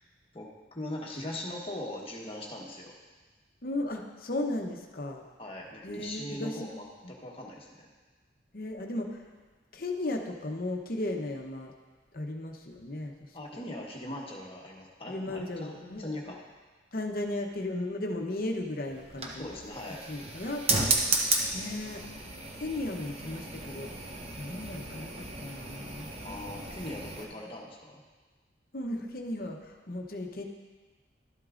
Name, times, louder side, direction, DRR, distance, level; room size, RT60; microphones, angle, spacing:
voice 1, 0.3-2.9 5.4-7.9 13.3-16.4 19.3-20.0 26.2-28.0, left 1 dB, 30° left, -2 dB, 1.2 m, -40 dB
voice 2, 3.6-5.2 5.8-7.1 8.5-9.2 9.7-11.7 12.1-13.7 15.1-16.3 16.9-19.5 20.1-21.1 21.5-22.0 22.5-23.9 24.4-26.1 28.7-30.4, left 1 dB, 50° left, 3 dB, 0.8 m, -36 dB
sound 1, 18.9-27.3, right 3 dB, 35° right, 0.7 m, -33 dB
12.0 x 8.2 x 2.5 m, 1.3 s
head